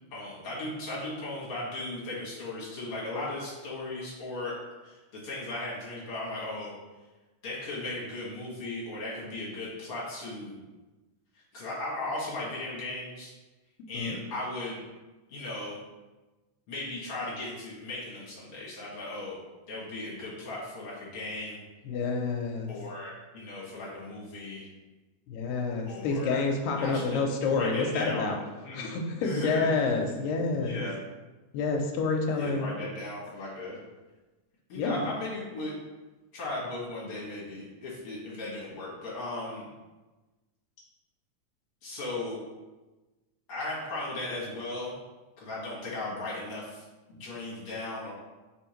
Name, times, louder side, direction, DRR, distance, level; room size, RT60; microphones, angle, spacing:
voice 1, 0.1-4.6 4.8-6.8 7.4-10.6 11.5-13.3 13.9-14.8 15.3-15.8 16.7-19.4 19.7-21.6 22.7-24.7 25.9-26.4 26.8-27.2 27.5-28.3 28.7-29.0 29.2-29.7 30.6-31.0 32.3-33.8 34.7-35.7 36.3-39.6 41.8-42.4 43.5-44.9 45.4-48.1, left 2 dB, 55° left, -6 dB, 1.9 m, -37 dB
voice 2, 21.9-22.7 25.3-28.4 28.7-30.8 31.5-32.8 34.7-35.0, left 4 dB, 90° left, 2 dB, 2.2 m, -28 dB
5.1 x 3.5 x 3.0 m, 1.2 s
omnidirectional pair, 3.8 m